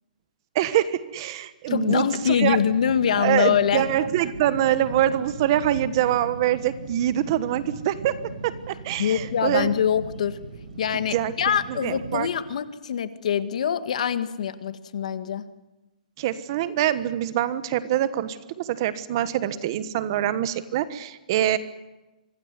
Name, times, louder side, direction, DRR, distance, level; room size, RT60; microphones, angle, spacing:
voice 1, 0.5-2.6 3.2-8.2 8.4-9.7 10.9-11.3 11.8-12.3 16.2-21.6, right 12 dB, 35° right, 14 dB, 1.3 m, -24 dB
voice 2, 1.7-3.8 9.0-10.4 10.8-15.5, left 8 dB, 55° left, 12 dB, 1.8 m, -24 dB
sound 1, 2.2-12.3, right 3 dB, 80° right, 5.3 m, -39 dB
25.5 x 18.5 x 9.7 m, 1.1 s
hypercardioid pair, 170°, 4 cm